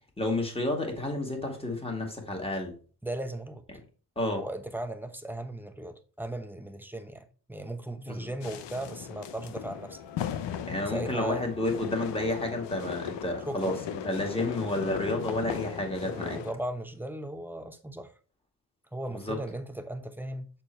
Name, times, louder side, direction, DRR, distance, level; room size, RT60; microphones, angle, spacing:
voice 1, 0.2-2.8 4.2-4.4 8.1-8.3 10.7-16.4 19.1-19.4, left 1 dB, 15° left, 2.2 m, -31 dB
voice 2, 3.0-3.6 4.4-10.0 10.8-11.4 13.5-13.8 16.1-18.1 18.9-20.5, right 1 dB, 5° right, 0.9 m, -37 dB
sound 1, 8.4-16.5, left 9 dB, 90° left, 0.8 m, -37 dB
7.0 x 4.5 x 4.5 m
cardioid pair, 95°, 41 cm